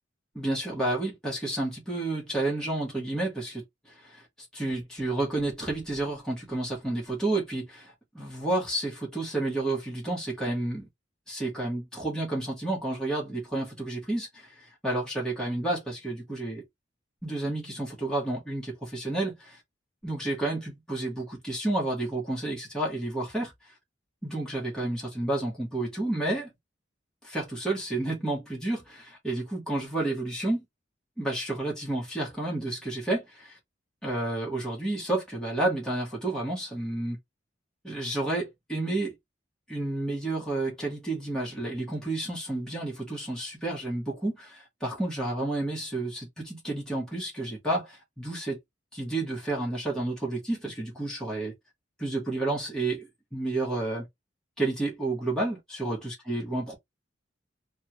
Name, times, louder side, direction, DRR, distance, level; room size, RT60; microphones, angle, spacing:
voice 1, 0.3-4.3 4.5-10.8 11.3-16.6 17.2-19.6 20.0-23.7 24.2-26.5 27.2-30.6 31.2-33.6 34.0-37.2 37.8-39.2 39.7-48.6 48.9-51.5 52.0-54.1 54.6-56.7, right 2 dB, 5° left, 1.1 m, -31 dB
3.3 x 2.2 x 2.9 m
head